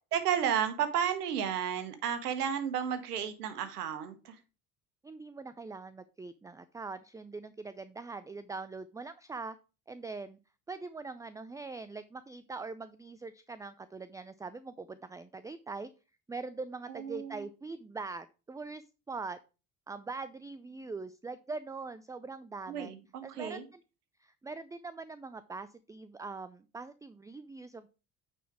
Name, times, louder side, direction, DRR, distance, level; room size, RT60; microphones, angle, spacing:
voice 1, 0.1-4.4 16.9-17.4 22.7-23.7, right 8 dB, 90° right, 10 dB, 1.1 m, -32 dB
voice 2, 5.0-9.6 9.9-10.4 10.7-15.9 16.3-19.4 19.9-22.9 23.2-23.8 24.2-28.0, right 4 dB, 10° right, 14 dB, 0.4 m, -42 dB
9.0 x 4.2 x 4.7 m, 0.32 s
hypercardioid pair, 60°, 45 cm